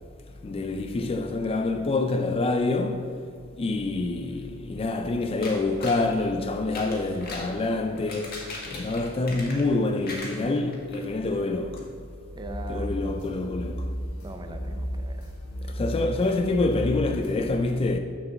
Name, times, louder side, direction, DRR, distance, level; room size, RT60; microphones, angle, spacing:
voice 1, 0.4-3.2 3.6-8.4 8.7-11.8 12.7-13.9 15.7-18.0, left 2 dB, 25° left, 0.3 m, -26 dB
sound 1, 5.4-6.0 6.6-7.5 7.9-9.8 10.0-11.0 11.3-11.4 11.8-11.9, left 2 dB, 45° left, 1.5 m, -39 dB
voice 2, 12.3-13.3 14.2-15.8, right 1 dB, 20° right, 0.6 m, -41 dB
sound 2, 12.4-17.5, equal, 75° left, 1.7 m, -34 dB
6.7 x 4.6 x 6.8 m
head